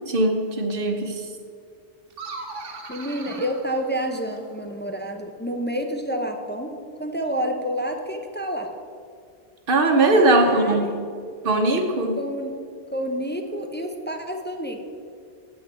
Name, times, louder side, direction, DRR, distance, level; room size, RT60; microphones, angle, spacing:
voice 1, 0.1-1.2 9.7-10.9 11.4-12.2, right 2 dB, 50° right, 5 dB, 1.1 m, -20 dB
sound 1, 2.1-4.6, right 3 dB, 85° right, 1.4 m, -39 dB
voice 2, 2.5-6.7 7.0-8.7 10.1-10.9 12.2-12.5 12.9-14.8, equal, 15° left, 4 dB, 0.4 m, -29 dB
8.4 x 6.2 x 6.8 m, 2.3 s
omnidirectional pair, 1.2 m